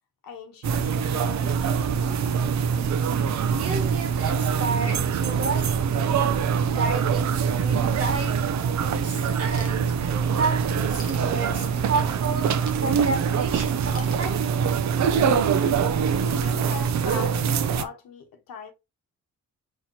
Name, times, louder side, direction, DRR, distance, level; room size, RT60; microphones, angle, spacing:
voice 1, 0.2-2.2 15.8-18.7, left 6 dB, 85° left, 1.2 m, -40 dB
sound 1, 0.6-17.8, right 7 dB, 55° right, 0.6 m, -24 dB
voice 2, 3.5-8.4 8.7-14.5, right 4 dB, 40° right, 1.4 m, -32 dB
Ratchet pawl / Tools, 9.5-10.3 10.7-11.8 12.4-13.4 13.9-14.9, left 2 dB, 25° left, 1.3 m, -46 dB
5.7 x 3.2 x 2.7 m
wide cardioid pair, 165°, 33 cm